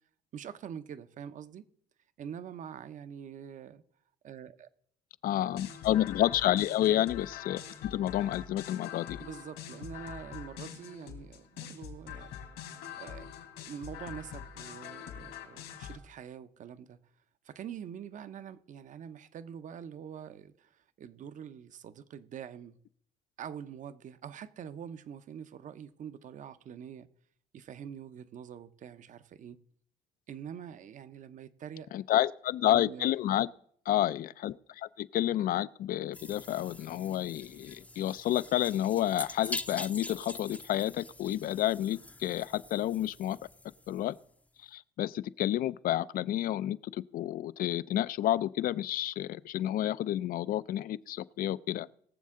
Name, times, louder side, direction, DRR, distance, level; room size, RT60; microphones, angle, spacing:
voice 1, 0.3-1.6 2.2-3.8 4.2-4.7 9.2-12.4 12.6-13.4 13.7-17.0 17.4-22.8 23.4-27.1 27.5-29.6 30.3-31.9 32.7-33.2, right 8 dB, 50° right, 0.7 m, -45 dB
voice 2, 5.2-9.2 31.9-33.5 33.9-43.4 43.9-44.2 44.6-51.9, left 13 dB, 60° left, 0.4 m, -30 dB
sound 1, 5.4-16.0, left 9 dB, 85° left, 3.2 m, -44 dB
sound 2, 36.1-44.3, left 2 dB, 10° left, 0.6 m, -44 dB
21.0 x 7.4 x 3.7 m
cardioid pair, 110°, 17 cm